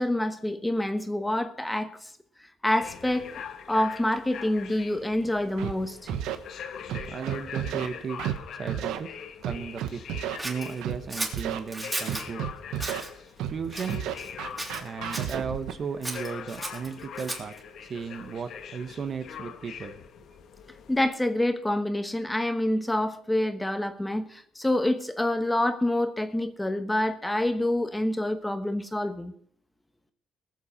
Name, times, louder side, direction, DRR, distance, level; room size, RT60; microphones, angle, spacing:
voice 1, 0.0-2.1 2.6-3.3 3.7-6.2 20.9-29.3, left 1 dB, 10° left, 1.1 m, -27 dB
sound 1, 2.8-21.1, left 7 dB, 60° left, 1.3 m, -43 dB
Scratching (performance technique), 5.6-5.7 6.1-6.4 6.9-7.9 8.2-8.4 8.7-9.0 9.4-10.4 10.8-11.0 11.3-11.6 12.1-13.0 13.4-13.6 13.9-15.7, right 11 dB, 90° right, 1.1 m, -31 dB
voice 2, 7.1-9.1 9.4-10.0 10.4-12.5 13.5-14.0 14.8-17.6 17.9-19.9, right 6 dB, 40° right, 1.1 m, -35 dB
Scissors, 10.4-12.3 12.7-13.1 13.7-14.3 14.6-15.4 16.0-17.6, right 2 dB, 15° right, 3.4 m, -35 dB
20.5 x 7.3 x 5.1 m
cardioid pair, 125°, 0 cm